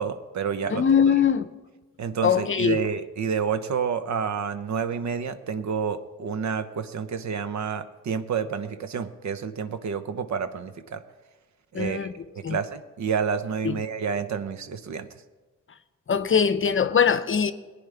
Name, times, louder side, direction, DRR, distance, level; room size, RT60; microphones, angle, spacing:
voice 1, 0.0-0.8 2.0-11.0 11.7-12.1 12.5-15.1, right 6 dB, 60° right, 0.8 m, -29 dB
voice 2, 0.7-1.5 2.2-2.8 11.7-12.1 12.4-12.6 13.6-13.8 16.1-17.5, left 7 dB, 40° left, 0.7 m, -21 dB
17.5 x 9.5 x 3.4 m
cardioid pair, 70°, 32 cm